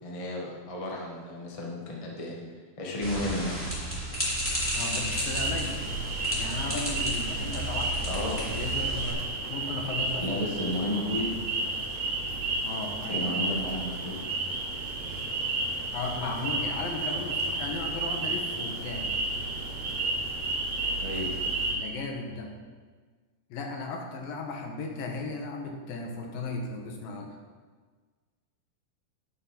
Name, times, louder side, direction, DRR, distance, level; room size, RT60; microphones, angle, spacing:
voice 1, 0.0-3.7 8.0-8.5 10.2-11.3 13.1-14.2 21.0-21.3, left 1 dB, 30° left, -2 dB, 0.6 m, -33 dB
sound 1, 3.0-9.1, right 1 dB, 5° left, 2.8 m, -32 dB
voice 2, 4.7-5.8 6.4-9.2 9.5-10.5 12.6-13.4 15.9-19.1 21.7-22.5 23.5-27.3, left 3 dB, 80° left, 2 dB, 3.0 m, -36 dB
sound 2, 5.3-21.8, right 2 dB, 50° right, 2.4 m, -32 dB
10.0 x 7.7 x 5.9 m, 1.5 s
omnidirectional pair, 4.1 m